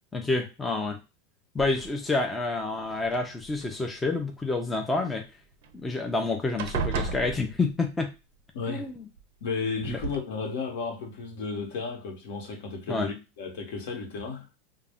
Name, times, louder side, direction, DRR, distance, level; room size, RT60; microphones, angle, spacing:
voice 1, 0.1-1.0 1.5-5.3 5.8-8.1 8.7-9.1 9.9-10.0 12.9-13.1, left 3 dB, 10° left, 0.4 m, -28 dB
sound 1, 1.6-2.1 3.0-3.8 5.6-5.7 6.0-6.2 6.6-8.0 9.2-9.3 9.8-10.2, right 5 dB, 70° right, 0.4 m, -34 dB
voice 2, 8.5-8.9 9.4-14.5, left 4 dB, 70° left, 0.9 m, -33 dB
2.3 x 2.0 x 3.5 m
supercardioid pair, 155°, 0 cm